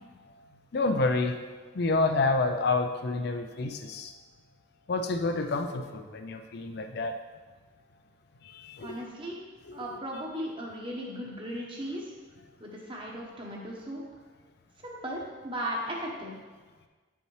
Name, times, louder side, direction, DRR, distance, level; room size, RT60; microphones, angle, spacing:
voice 1, 0.7-1.4 1.7-4.1 4.9-7.2 8.4-9.0 9.7-9.8, left 3 dB, 50° left, 6 dB, 0.4 m, -28 dB
voice 2, 8.8-9.5 9.7-12.1 12.6-14.0 14.8-16.4, equal, 25° right, -2 dB, 1.1 m, -37 dB
8.6 x 5.4 x 3.2 m, 1.4 s
head